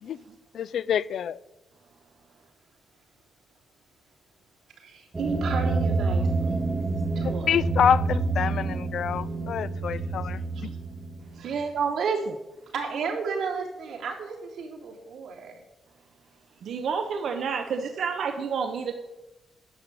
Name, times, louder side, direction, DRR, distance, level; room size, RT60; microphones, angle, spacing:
voice 1, 0.5-1.4 7.2-10.4, left 8 dB, 60° left, 18 dB, 0.4 m, -26 dB
voice 2, 4.8-6.8 7.1-7.6 10.5-10.7 11.4-11.7 12.0-12.1 12.7-15.6, right 5 dB, 85° right, -2 dB, 3.3 m, -34 dB
sound 1, 5.1-11.6, right 3 dB, 20° right, 0.9 m, -28 dB
voice 3, 11.4-12.4 16.6-18.9, right 6 dB, 60° right, 5 dB, 0.9 m, -28 dB
10.5 x 7.6 x 8.4 m, 1.0 s
wide cardioid pair, 180°, 0 cm